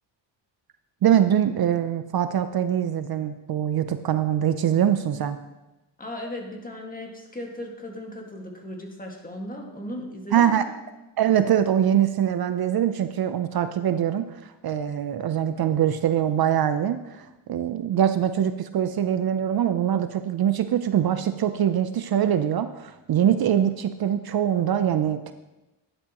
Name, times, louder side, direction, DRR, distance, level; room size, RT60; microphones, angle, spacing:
voice 1, 1.0-5.4 10.3-10.6 11.2-25.3, right 10 dB, 55° right, 10 dB, 0.6 m, -23 dB
voice 2, 6.0-10.7, left 1 dB, 20° left, 1 dB, 1.9 m, -37 dB
12.0 x 10.0 x 3.0 m, 1.0 s
cardioid pair, 100°, 44 cm